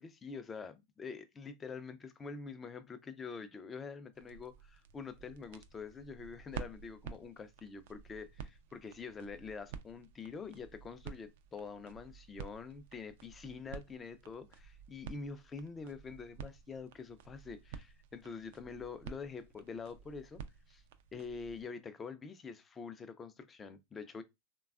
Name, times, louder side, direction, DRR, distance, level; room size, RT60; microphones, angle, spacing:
voice 1, 0.0-20.4 20.7-20.8 21.1-24.2, left 5 dB, 20° left, 0.4 m, -46 dB
sound 1, 4.1-21.7, right 7 dB, 65° right, 0.4 m, -51 dB
3.2 x 2.2 x 2.4 m
hypercardioid pair, 105°, 0 cm